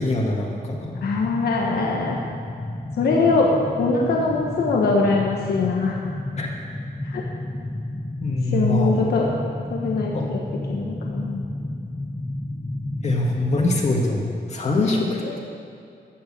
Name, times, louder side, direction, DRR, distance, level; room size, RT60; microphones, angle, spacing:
voice 1, 0.0-0.9 6.4-6.5 8.2-9.0 10.1-10.3 13.0-15.4, left 2 dB, 40° left, -1 dB, 1.9 m, -23 dB
sound 1, 0.7-14.2, left 1 dB, 15° left, 0.9 m, -32 dB
voice 2, 1.0-2.2 3.0-5.9 7.0-7.2 8.5-9.3 9.7-10.4 10.7-11.4 14.7-15.4, left 3 dB, 70° left, -1 dB, 1.5 m, -22 dB
14.0 x 6.6 x 8.7 m, 2.4 s
cardioid pair, 120°, 17 cm